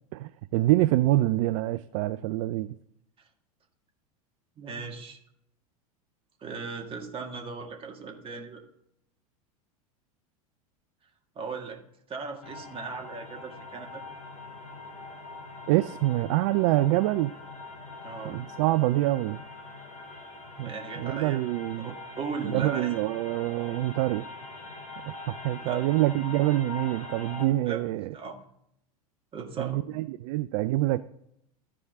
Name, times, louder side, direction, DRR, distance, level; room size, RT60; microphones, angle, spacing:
voice 1, 0.1-2.8 15.7-17.3 18.2-19.4 20.6-21.9 22.4-24.3 25.0-28.1 29.6-31.0, right 16 dB, 55° right, 13 dB, 0.4 m, -26 dB
voice 2, 4.6-5.2 6.4-8.6 11.4-11.8 12.1-14.0 18.0-18.4 20.6-21.4 21.8-23.0 25.6-25.8 27.7-27.8 28.1-28.4 29.3-29.8, right 4 dB, 30° right, 2 dB, 1.9 m, -37 dB
sound 1, 12.4-27.5, left 2 dB, 40° left, 3.1 m, -43 dB
14.0 x 4.9 x 3.6 m, 0.75 s
hypercardioid pair, 90°, 19 cm